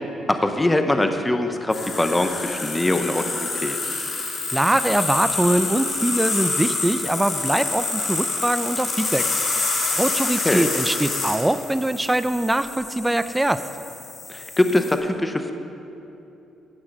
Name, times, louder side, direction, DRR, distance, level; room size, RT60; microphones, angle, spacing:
voice 1, 0.3-3.9 10.4-10.7 14.3-15.5, left 1 dB, 15° left, 6 dB, 0.8 m, -22 dB
sound 1, 1.7-14.9, left 3 dB, 55° left, 3.0 m, -27 dB
voice 2, 4.5-9.3 10.0-13.6, right 1 dB, 10° right, 12 dB, 0.4 m, -22 dB
16.5 x 6.3 x 6.0 m, 2.9 s
cardioid pair, 90°, 0 cm